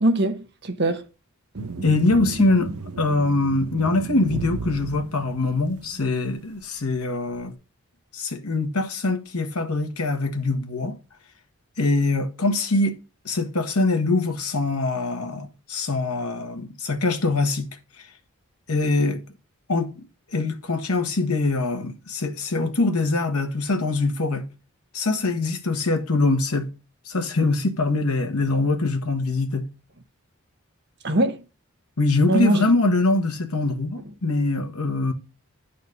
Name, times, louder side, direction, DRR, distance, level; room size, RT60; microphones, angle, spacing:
voice 1, 0.0-1.0 2.2-2.5 31.0-31.4 32.3-32.6, right 1 dB, 50° right, 1.1 m, -22 dB
sound 1, 1.6-6.1, right 4 dB, 85° right, 0.8 m, -34 dB
voice 2, 1.8-2.7 3.0-7.5 8.1-10.9 11.8-13.0 13.2-17.7 18.0-18.1 18.7-19.2 19.7-24.4 24.9-26.7 27.1-29.7 32.0-35.1, left 2 dB, 90° left, 1.5 m, -23 dB
11.0 x 4.3 x 5.3 m
head